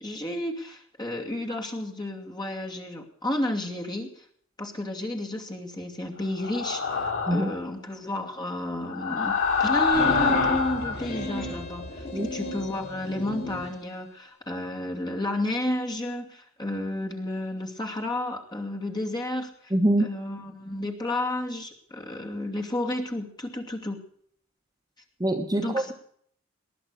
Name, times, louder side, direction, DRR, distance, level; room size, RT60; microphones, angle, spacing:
voice 1, 0.0-4.2 4.6-19.7 20.0-24.0 25.5-25.9, left 1 dB, 20° left, 2 dB, 2.6 m, -32 dB
sound 1, 6.4-7.6 8.8-11.0, left 5 dB, 70° left, 3.3 m, -25 dB
sound 2, 9.9-13.7, equal, 50° left, 7.1 m, -33 dB
voice 2, 19.7-20.1 25.2-25.9, right 1 dB, 20° right, 5 dB, 1.1 m, -24 dB
20.0 x 11.0 x 6.6 m, 0.63 s
head